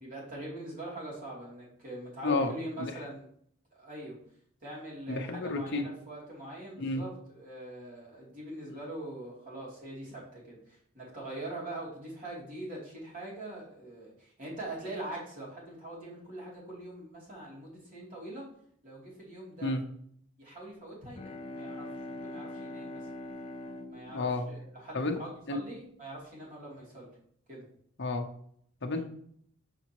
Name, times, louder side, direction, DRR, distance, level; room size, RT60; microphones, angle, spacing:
voice 1, 0.0-3.3 3.7-4.2 4.6-18.5 18.8-19.7 20.4-23.1 23.9-27.1 27.5-27.7 28.9-29.0, right 1 dB, 40° right, -5 dB, 3.0 m, -43 dB
voice 2, 5.1-5.8 6.8-7.0 19.6-19.8 24.1-24.5 24.9-25.2 25.5-25.6 28.0-28.3 28.8-29.0, left 3 dB, 55° left, 3 dB, 0.9 m, -31 dB
Bowed string instrument, 20.9-25.7, left 2 dB, 25° left, 0.4 m, -43 dB
6.9 x 6.1 x 3.0 m, 0.64 s
head